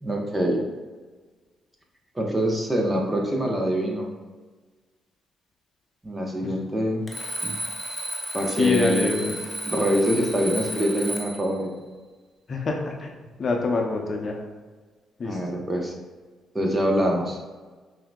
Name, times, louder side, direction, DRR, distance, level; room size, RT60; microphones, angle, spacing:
voice 1, 0.0-0.6 2.1-4.1 6.0-7.1 7.4-7.5 8.3-9.2 9.6-11.7 15.2-15.9 16.5-17.4, equal, 20° right, 0 dB, 0.9 m, -24 dB
Alarm, 7.1-11.5, right 1 dB, 25° left, 0.8 m, -33 dB
voice 2, 8.5-9.3 12.5-13.1 13.4-14.4 15.2-15.4, left 3 dB, 50° left, 1 dB, 0.6 m, -25 dB
5.6 x 2.7 x 2.3 m, 1.4 s
supercardioid pair, 65°, 0 cm